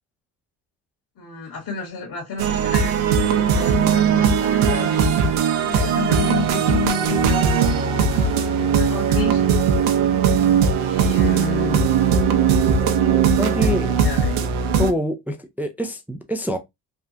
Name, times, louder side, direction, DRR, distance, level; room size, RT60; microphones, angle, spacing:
voice 1, 1.2-5.0 5.6-10.0 10.8-11.8 13.6-14.4, left 5 dB, 50° left, 1.6 m, -31 dB
sound 1, 2.4-14.9, right 6 dB, 75° right, 0.8 m, -19 dB
voice 2, 13.4-13.9 14.8-16.6, equal, 5° right, 0.3 m, -25 dB
3.5 x 2.3 x 2.6 m
supercardioid pair, 85°, 49 cm